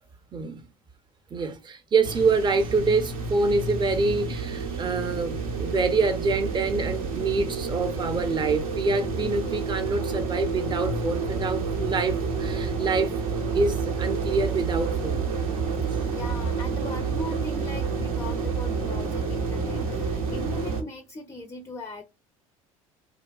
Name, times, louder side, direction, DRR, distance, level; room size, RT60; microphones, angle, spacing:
voice 1, 1.3-15.3, right 3 dB, 25° right, 0.6 m, -26 dB
sound 1, 2.0-20.8, right 4 dB, 80° right, 0.7 m, -29 dB
voice 2, 15.8-22.0, left 2 dB, 15° left, 0.4 m, -40 dB
2.7 x 2.2 x 2.3 m
hypercardioid pair, 65°, 17 cm